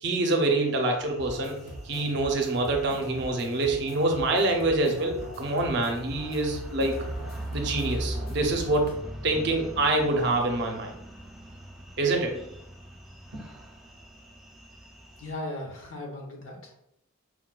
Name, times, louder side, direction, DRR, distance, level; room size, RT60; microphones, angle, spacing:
voice 1, 0.0-6.9 7.5-9.0 9.2-10.9 12.0-12.4 13.3-13.4, right 2 dB, 55° right, 3 dB, 0.5 m, -26 dB
sound 1, 0.7-15.3, right 1 dB, 5° right, 0.4 m, -41 dB
sound 2, 1.2-9.0, equal, 45° left, 0.6 m, -42 dB
voice 2, 15.2-16.8, left 1 dB, 70° left, -1 dB, 0.9 m, -37 dB
4.5 x 2.2 x 2.2 m, 0.79 s
head